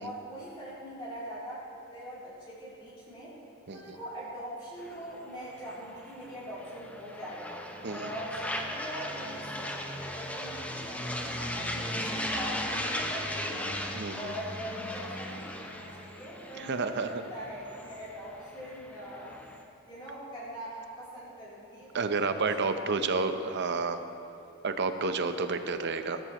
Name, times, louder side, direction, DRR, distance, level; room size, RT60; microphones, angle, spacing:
voice 1, 0.0-3.3 3.7-7.5 7.9-13.7 14.1-19.3 19.8-23.5, equal, 20° left, -10 dB, 3.1 m, -42 dB
sound 1, 4.8-19.6, left 1 dB, 5° left, 0.7 m, -37 dB
voice 2, 7.8-8.1 13.9-14.3 16.6-17.2 21.9-24.0 24.6-26.2, right 4 dB, 55° right, 9 dB, 0.7 m, -30 dB
17.0 x 12.5 x 3.0 m, 2.9 s
head